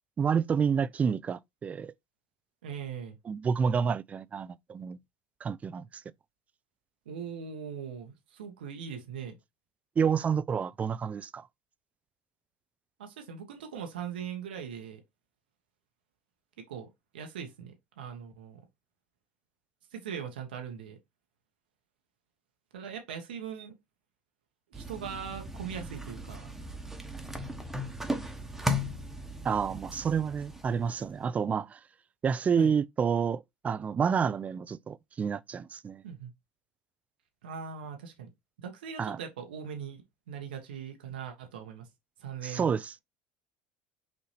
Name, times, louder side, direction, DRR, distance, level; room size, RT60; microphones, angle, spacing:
voice 1, 0.2-1.9 3.3-5.0 5.4-5.9 10.0-11.5 29.4-31.8 32.2-36.0 39.0-39.2 42.4-43.0, right 6 dB, 30° right, 0.4 m, -29 dB
voice 2, 2.6-3.2 7.0-9.3 13.0-15.0 16.6-16.9 17.1-18.6 19.9-21.0 22.7-23.7 24.7-26.5 32.6-32.7 36.0-36.3 37.4-38.3 38.6-41.9 42.2-42.8, right 7 dB, 85° right, 1.2 m, -40 dB
sound 1, 24.7-31.2, left 1 dB, 5° right, 1.2 m, -37 dB
5.7 x 2.7 x 3.3 m
hypercardioid pair, 80°, 5 cm